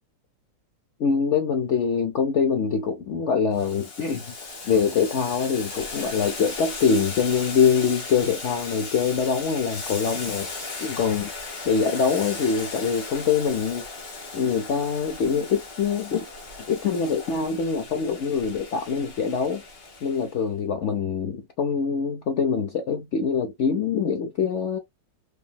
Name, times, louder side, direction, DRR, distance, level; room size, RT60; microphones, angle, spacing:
voice 1, 1.0-4.3 4.7-10.5 10.8-13.8 14.3-16.2 16.7-19.6 20.0-24.8, left 6 dB, 85° left, 0.6 m, -24 dB
Boiling, 3.5-20.3, left 3 dB, 35° left, 1.2 m, -37 dB
4.9 x 2.8 x 2.2 m
omnidirectional pair, 2.0 m